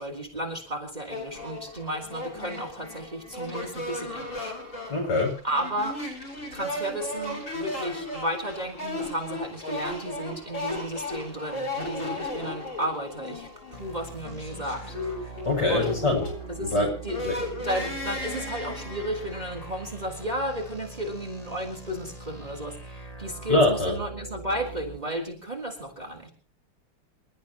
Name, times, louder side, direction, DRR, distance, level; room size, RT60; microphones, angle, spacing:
voice 1, 0.0-4.9 5.4-6.0 6.5-15.0 15.2-15.4 15.7-16.0 16.5-16.7 17.0-26.3, equal, 20° right, 2 dB, 3.9 m, -33 dB
sound 1, 1.1-20.8, left 2 dB, 80° left, 7.0 m, -36 dB
voice 2, 4.9-5.4 15.4-16.3 16.6-16.9 17.2-17.3 23.5-23.9, left 2 dB, 50° left, 0 dB, 8.3 m, -23 dB
sound 2, 13.7-25.0, right 3 dB, 15° left, 3.2 m, -42 dB
28.0 x 13.5 x 3.0 m, 0.35 s
omnidirectional pair, 2.4 m